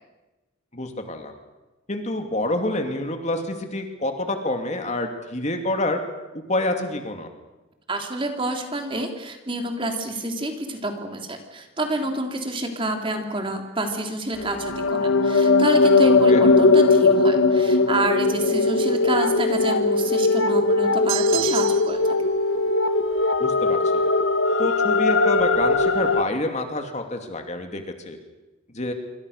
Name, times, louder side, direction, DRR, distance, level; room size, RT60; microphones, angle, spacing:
voice 1, 0.7-1.3 1.9-6.0 6.3-7.3 16.0-16.4 23.4-24.0 24.6-28.2 28.7-28.9, left 2 dB, 35° left, 5 dB, 2.7 m, -27 dB
voice 2, 7.9-22.0, right 1 dB, 25° right, 4 dB, 3.2 m, -28 dB
sound 1, 14.4-26.2, left 3 dB, 80° left, 1.5 m, -19 dB
sound 2, 21.1-22.1, right 14 dB, 80° right, 0.9 m, -29 dB
27.0 x 24.5 x 6.6 m, 1.1 s
head